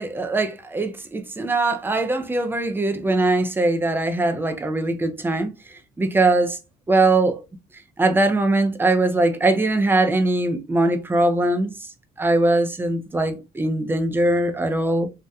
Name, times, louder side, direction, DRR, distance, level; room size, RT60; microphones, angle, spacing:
voice 1, 0.0-5.5 6.0-6.6 6.9-7.4 8.0-11.7 12.2-15.1, right 2 dB, 10° right, 0.4 m, -21 dB
2.8 x 2.1 x 2.3 m
cardioid pair, 110°, 17 cm